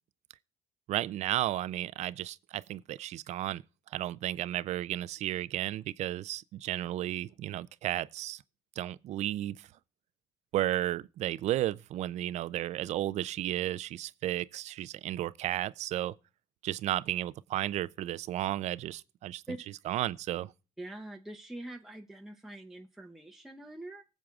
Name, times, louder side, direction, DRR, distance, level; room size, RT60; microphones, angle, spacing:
voice 1, 0.9-3.6 3.9-8.4 8.8-9.7 10.5-16.1 16.6-19.4 19.9-20.5, right 13 dB, 65° right, 0.4 m, -33 dB
voice 2, 20.8-24.0, right 1 dB, ahead, 0.8 m, -44 dB
19.5 x 7.5 x 2.4 m
supercardioid pair, 70°, 13 cm